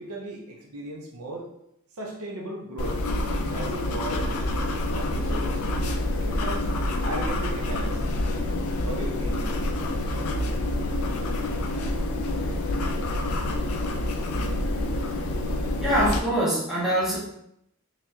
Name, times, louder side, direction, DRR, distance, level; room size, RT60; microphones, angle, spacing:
voice 1, 0.0-1.5 1.9-3.0 3.5-5.6 6.2-6.7 7.0-8.0 8.8-9.5, right 2 dB, 80° right, -1 dB, 0.8 m, -36 dB
sound 1, 2.8-16.2, left 1 dB, 75° left, 0.5 m, -27 dB
voice 2, 15.8-17.2, right 1 dB, ahead, -9 dB, 1.4 m, -23 dB
4.0 x 3.1 x 2.8 m, 0.75 s
head